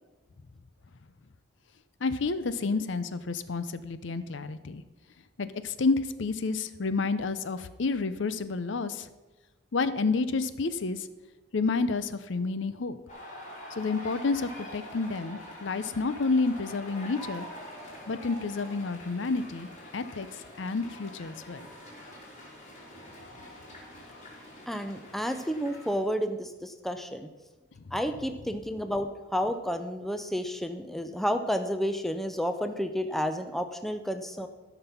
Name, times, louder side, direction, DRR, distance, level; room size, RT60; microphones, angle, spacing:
voice 1, 2.0-4.8 5.4-9.1 9.7-11.1 11.5-13.0 13.8-17.5 18.1-21.7 27.9-28.0, left 4 dB, 65° left, 13 dB, 0.6 m, -30 dB
sound 1, 13.1-26.0, left 1 dB, 35° left, 3.3 m, -45 dB
voice 2, 24.7-27.3 27.9-34.5, equal, ahead, 8 dB, 0.5 m, -31 dB
13.0 x 6.0 x 5.7 m, 1.2 s
head